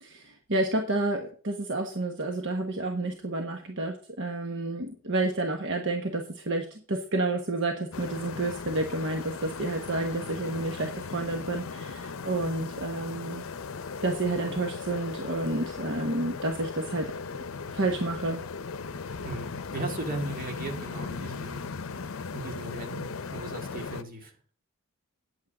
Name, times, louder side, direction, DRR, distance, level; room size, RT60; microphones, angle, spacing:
voice 1, 0.0-13.4 14.0-17.1 17.7-18.4, right 2 dB, 60° right, 4 dB, 1.2 m, -30 dB
sound 1, 7.9-24.0, left 5 dB, 75° left, 0.6 m, -38 dB
voice 2, 19.2-21.7 22.3-24.3, right 2 dB, 45° right, 3 dB, 2.3 m, -37 dB
9.3 x 8.5 x 5.0 m, 0.42 s
head